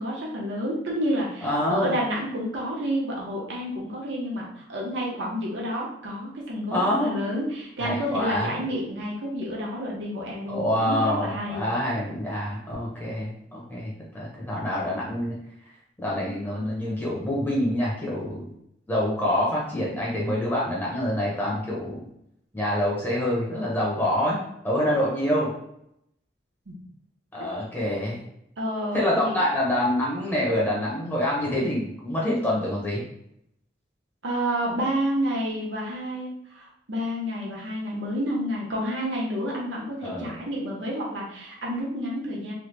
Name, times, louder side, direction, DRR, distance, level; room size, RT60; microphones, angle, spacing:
voice 1, 0.0-11.6 26.7-26.8 28.6-29.4 34.2-42.5, equal, 75° right, -3 dB, 1.0 m, -29 dB
voice 2, 1.4-1.9 6.7-7.2 7.8-8.6 10.5-15.4 16.0-18.5 18.9-22.0 22.5-25.5 27.3-28.2 28.9-33.0 40.0-40.3, left 1 dB, 10° left, -5 dB, 0.8 m, -26 dB
3.1 x 2.3 x 3.2 m, 0.76 s
head